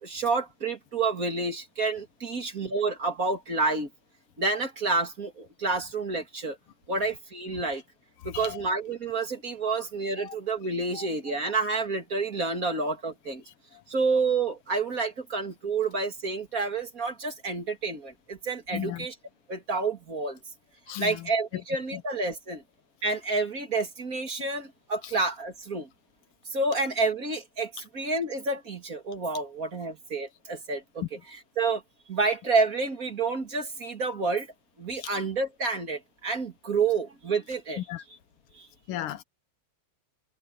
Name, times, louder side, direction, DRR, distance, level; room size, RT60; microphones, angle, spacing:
voice 1, 0.0-3.9 4.4-6.6 6.9-7.8 8.2-13.4 13.9-19.2 19.5-20.4 20.9-22.6 23.0-25.9 26.5-31.8 32.1-34.5 34.8-38.2 38.5-38.7, right 3 dB, 40° right, 2.9 m, -29 dB
voice 2, 18.7-19.1 20.9-21.2 35.0-35.1 37.9-38.0 38.9-39.2, left 12 dB, 90° left, 1.8 m, -35 dB
omnidirectional pair, 2.4 m